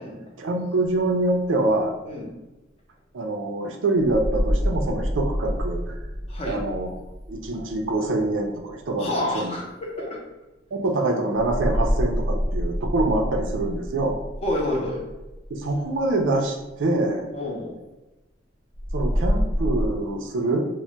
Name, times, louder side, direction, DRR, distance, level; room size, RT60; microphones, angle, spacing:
voice 1, 0.4-1.9 3.1-5.9 6.4-6.9 7.3-9.5 10.0-10.1 10.7-14.2 15.5-17.3 18.9-20.6, right 2 dB, 80° right, 4 dB, 0.4 m, -25 dB
sound 1, 4.0-8.7 11.3-16.4 18.7-19.9, equal, 15° right, 0.5 m, -27 dB
voice 2, 6.3-6.6 9.0-10.2 14.4-15.0 17.3-17.8, left 1 dB, 35° left, -1 dB, 0.6 m, -29 dB
2.2 x 2.1 x 3.8 m, 1.0 s
head